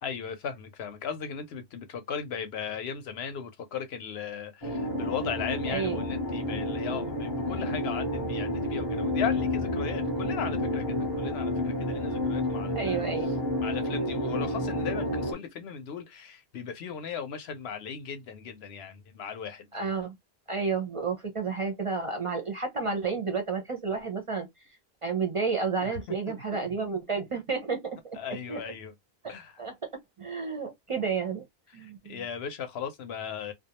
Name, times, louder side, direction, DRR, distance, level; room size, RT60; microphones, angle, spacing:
voice 1, 0.0-13.1 13.6-19.7 25.8-26.0 28.1-28.9 29.3-29.6 31.8-33.5, left 7 dB, 80° left, 0.9 m, -37 dB
sound 1, 4.6-15.3, left 1 dB, 30° left, 0.7 m, -30 dB
voice 2, 5.7-6.0 12.7-13.3 19.7-20.2 20.5-24.5 25.0-28.2 28.5-28.6 29.2-29.9 30.2-31.4 31.7-32.2, right 5 dB, 40° right, 0.5 m, -31 dB
2.3 x 2.2 x 2.8 m
omnidirectional pair, 1.0 m